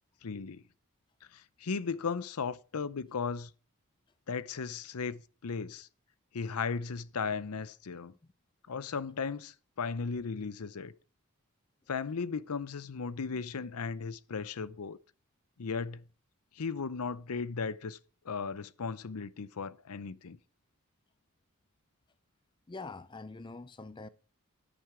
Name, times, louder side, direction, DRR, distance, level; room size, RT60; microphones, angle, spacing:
voice 1, 0.2-0.6 1.3-3.5 4.3-5.9 6.3-8.1 8.7-10.9 11.9-15.0 15.6-16.0 16.6-18.0 18.2-20.4, left 5 dB, 85° left, 0.6 m, -36 dB
voice 2, 22.7-24.1, left 3 dB, 20° left, 0.5 m, -44 dB
10.5 x 9.4 x 4.8 m
head